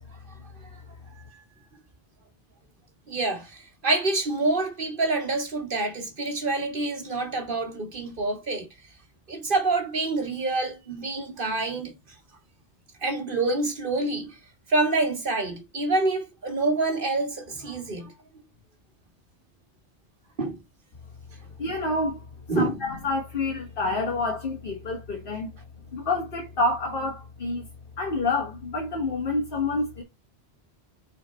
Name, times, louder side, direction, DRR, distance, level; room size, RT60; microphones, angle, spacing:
voice 1, 3.1-8.7 9.3-11.9 13.0-14.4 14.7-18.1 20.4-20.6 22.5-22.8, right 2 dB, 50° right, 1.7 m, -27 dB
voice 2, 21.6-22.2 22.5-25.5 25.9-27.7 28.0-30.0, left 2 dB, 50° left, 1.7 m, -28 dB
6.2 x 4.1 x 4.3 m
omnidirectional pair, 1.2 m